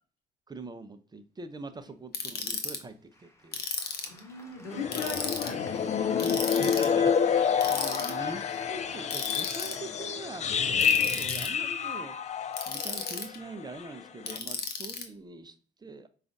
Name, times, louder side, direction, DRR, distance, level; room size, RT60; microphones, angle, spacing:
voice 1, 0.5-3.6 4.6-4.7 6.5-16.1, right 2 dB, 20° right, 0.5 m, -43 dB
Ratchet pawl, 2.1-2.8 3.5-4.2 4.9-5.5 6.2-6.9 7.6-8.1 9.1-9.7 10.8-11.5 12.5-13.4 14.3-15.0, left 5 dB, 50° left, 0.8 m, -34 dB
Applause, 3.1-12.1, left 1 dB, 15° left, 1.0 m, -51 dB
voice 2, 4.1-6.7, left 4 dB, 85° left, 0.7 m, -39 dB
sound 1, 4.7-13.3 13.6-13.9 14.3-14.4, left 7 dB, 35° left, 0.4 m, -28 dB
4.9 x 2.4 x 2.5 m
hypercardioid pair, 50°, 21 cm